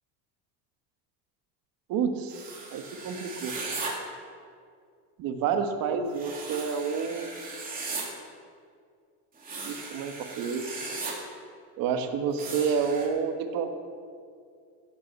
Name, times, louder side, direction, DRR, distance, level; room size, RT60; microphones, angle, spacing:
voice 1, 1.9-3.5 5.2-7.3 9.6-10.8 11.8-13.7, right 6 dB, 55° right, 6 dB, 1.6 m, -29 dB
sound 1, 2.3-3.9 6.1-8.0 9.4-11.1 12.4-13.1, right 3 dB, 20° right, 3.1 m, -37 dB
15.5 x 8.3 x 7.0 m, 2.2 s
supercardioid pair, 125°, 41 cm